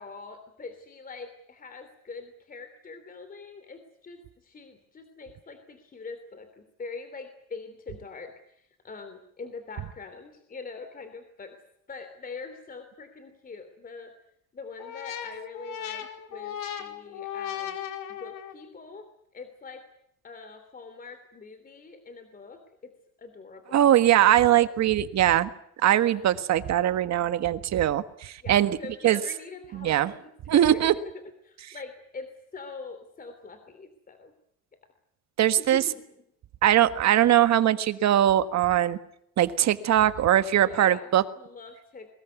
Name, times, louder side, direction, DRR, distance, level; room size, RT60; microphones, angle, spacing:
voice 1, 0.0-11.6 11.9-14.1 14.5-17.8 18.1-19.1 19.3-19.9 20.2-22.9 23.2-23.9 24.4-24.7 26.0-26.3 28.4-31.1 31.4-34.3 35.6-36.0 40.6-41.1 41.3-42.1, left 4 dB, 25° left, 9 dB, 3.1 m, -43 dB
sound 1, 14.8-18.7, left 10 dB, 90° left, 4.4 m, -37 dB
voice 2, 23.7-25.5 25.8-28.8 29.0-29.2 29.8-30.1 30.5-30.9 35.4-35.8 36.6-39.0 39.4-41.2, right 12 dB, 55° right, 11 dB, 1.7 m, -21 dB
23.0 x 21.5 x 9.4 m, 0.72 s
cardioid pair, 150°, 32 cm